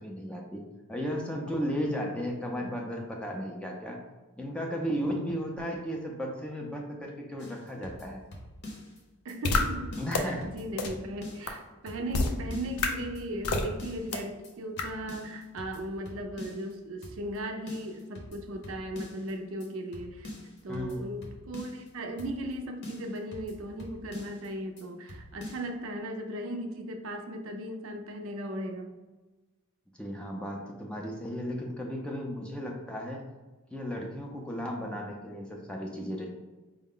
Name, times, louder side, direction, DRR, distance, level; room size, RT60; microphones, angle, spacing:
voice 1, 0.0-4.0 4.4-8.2 10.0-10.5 20.7-21.0 30.0-33.3 33.7-36.3, equal, 5° left, -1 dB, 0.4 m, -35 dB
sound 1, 7.4-9.0 9.3-9.4 9.6-11.6 11.9-12.2 12.5-14.2 14.4-14.5 14.8-16.7 17.0-17.4 17.7-19.3 19.6-19.7 19.9-21.9 22.2-22.6 22.8-24.5 24.8-24.9 25.1-25.7, left 1 dB, 50° left, 0.8 m, -45 dB
voice 2, 9.2-20.3 20.6-29.0, right 1 dB, 65° right, 4 dB, 0.5 m, -37 dB
sound 2, 9.4-9.6 10.1-10.2 10.8-10.9 11.5-11.6 12.1-12.3 12.8-12.9 13.4-13.6 14.1-14.2 14.8-14.9, left 3 dB, 90° left, 0.5 m, -26 dB
4.7 x 2.1 x 3.7 m, 1.2 s
head